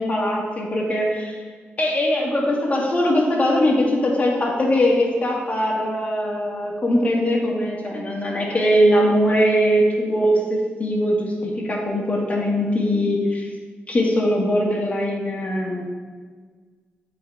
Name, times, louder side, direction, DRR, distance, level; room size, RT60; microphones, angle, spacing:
voice 1, 0.0-1.4 1.8-13.5 13.9-15.8, equal, 35° left, -2 dB, 1.9 m, -21 dB
7.9 x 4.3 x 4.6 m, 1.6 s
cardioid pair, 80°, 4 cm